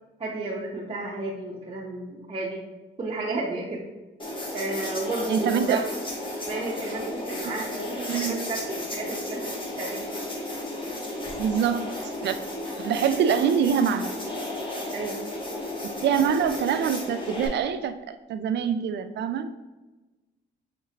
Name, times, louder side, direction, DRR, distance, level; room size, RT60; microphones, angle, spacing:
voice 1, 0.2-2.6 3.0-3.9 4.5-5.8 6.5-9.4 9.8-10.0 14.9-15.2, right 2 dB, 30° right, -5 dB, 0.8 m, -32 dB
sound 1, 4.2-17.5, left 1 dB, 25° left, 1.1 m, -33 dB
voice 2, 5.3-5.8 8.1-8.3 11.4-11.9 12.2-12.4 12.8-14.1 16.0-19.5, right 7 dB, 60° right, 10 dB, 0.4 m, -24 dB
5.7 x 3.0 x 2.8 m, 1.1 s
cardioid pair, 90°, 20 cm